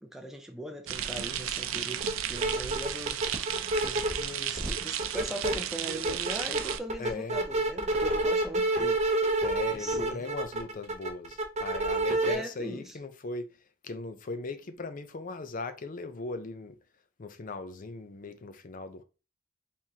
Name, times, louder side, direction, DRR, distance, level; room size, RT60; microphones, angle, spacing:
voice 1, 0.0-3.2 3.8-9.0 9.7-10.3 12.2-13.0, equal, ahead, 0.4 m, -40 dB
sound 1, 0.9-6.8, right 10 dB, 85° right, 0.5 m, -34 dB
sound 2, 2.0-2.1 2.4-4.2 4.6-5.5 5.9-12.4, right 2 dB, 35° right, 0.8 m, -28 dB
voice 2, 7.0-7.4 9.4-13.5 13.8-16.8 17.2-19.0, left 3 dB, 45° left, 0.6 m, -39 dB
4.6 x 3.6 x 2.8 m
head